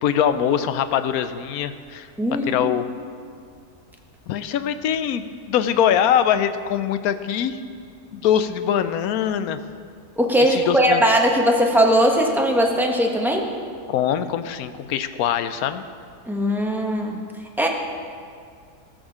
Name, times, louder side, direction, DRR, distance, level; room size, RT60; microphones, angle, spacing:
voice 1, 0.0-2.1 2.5-2.8 4.3-7.6 8.1-9.6 10.4-11.0 13.9-15.8, left 9 dB, 80° left, 11 dB, 1.1 m, -22 dB
voice 2, 2.2-2.7 10.2-13.5 16.3-17.2 17.6-17.7, equal, ahead, 0 dB, 0.9 m, -19 dB
18.0 x 6.4 x 4.9 m, 2.2 s
omnidirectional pair, 1.6 m